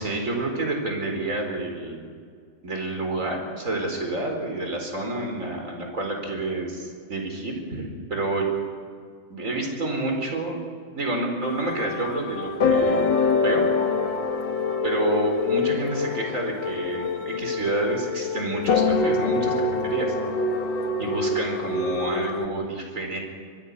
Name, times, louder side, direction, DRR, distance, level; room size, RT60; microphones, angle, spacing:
voice 1, 0.0-2.0 2.6-8.5 9.3-10.6 10.9-13.0 13.4-13.7 14.8-20.1 21.0-23.2, right 2 dB, 20° right, 2 dB, 4.6 m, -29 dB
sound 1, 11.4-22.5, left 4 dB, 55° left, 1.3 m, -25 dB
24.0 x 23.0 x 5.7 m, 2.1 s
omnidirectional pair, 4.2 m